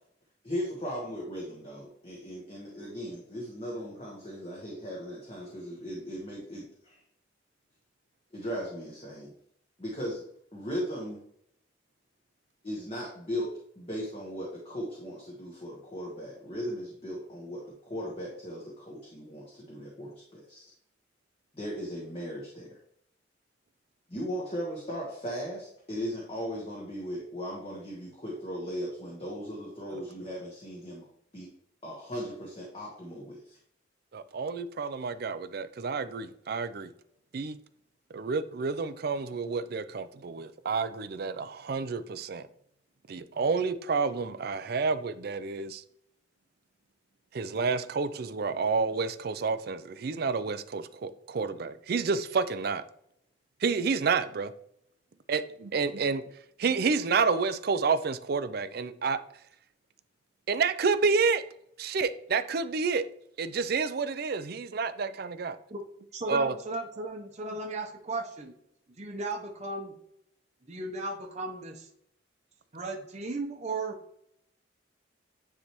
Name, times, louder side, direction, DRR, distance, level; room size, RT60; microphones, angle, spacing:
voice 1, 0.4-7.0 8.3-9.3 9.8-10.2 10.5-11.2 12.6-20.6 21.5-22.8 24.1-31.0 31.3-31.5 31.8-33.6, equal, 30° left, 1.2 m, -37 dB
voice 2, 34.1-36.9 37.3-37.6 38.1-42.4 43.1-45.8 47.3-52.8 53.6-54.5 55.3-55.4 55.7-56.2 56.6-59.2 60.5-61.4 61.8-63.0 63.4-65.6 66.3-66.6, right 4 dB, 55° right, 0.4 m, -29 dB
voice 3, 66.1-68.5 69.0-69.9 70.7-71.9 72.7-74.0, right 2 dB, 35° right, 0.8 m, -35 dB
9.6 x 3.3 x 3.0 m
head